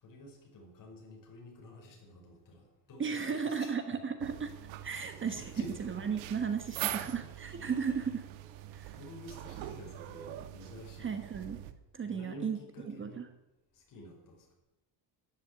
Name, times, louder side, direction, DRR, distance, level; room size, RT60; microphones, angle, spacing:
voice 1, 0.0-3.7 5.3-5.8 6.6-7.3 8.9-11.2 12.0-13.3 13.7-14.5, left 1 dB, 45° left, 1 dB, 5.5 m, -50 dB
voice 2, 3.0-4.5 4.8-5.4 5.8-8.3 8.7-9.0 11.0-11.6 11.9-12.6 12.9-13.2, right 6 dB, 25° right, 8 dB, 1.2 m, -35 dB
sound 1, 4.2-11.7, right 13 dB, 85° right, 1.4 m, -43 dB
13.0 x 10.5 x 9.8 m, 1.0 s
cardioid pair, 150°, 46 cm